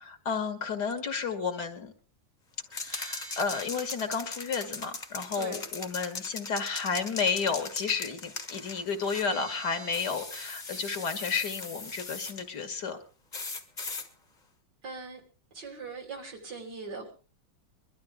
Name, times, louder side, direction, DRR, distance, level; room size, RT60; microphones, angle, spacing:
voice 1, 0.0-1.9 2.8-13.0, left 5 dB, 65° left, 7 dB, 2.2 m, -32 dB
sound 1, 0.9-1.0 2.9-3.8 4.9-5.0 9.2-10.9, right 4 dB, 40° right, 1.0 m, -46 dB
sound 2, 2.7-9.3 9.9-12.4 13.3-14.1, left 3 dB, 25° left, 1.4 m, -39 dB
voice 2, 5.4-5.7 14.8-15.2 15.5-17.1, right 4 dB, 65° right, 2 dB, 3.9 m, -40 dB
22.5 x 12.5 x 3.6 m, 0.34 s
omnidirectional pair, 2.0 m